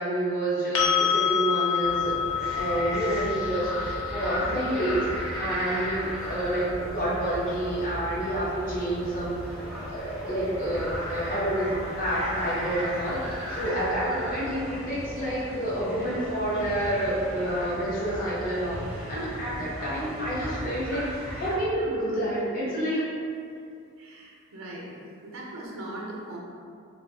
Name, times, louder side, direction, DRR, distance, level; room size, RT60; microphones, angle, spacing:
voice 1, 0.0-2.1 2.5-11.7 12.0-23.1, right 1 dB, 40° left, -9 dB, 0.8 m, -29 dB
sound 1, 0.7-8.6 11.4-11.5, left 8 dB, 60° left, 0.4 m, -30 dB
sound 2, 1.8-21.6, equal, ahead, 0.6 m, -36 dB
voice 2, 24.0-25.0 25.2-26.4, right 1 dB, 70° right, -3 dB, 0.5 m, -40 dB
2.6 x 2.3 x 3.6 m, 2.4 s
head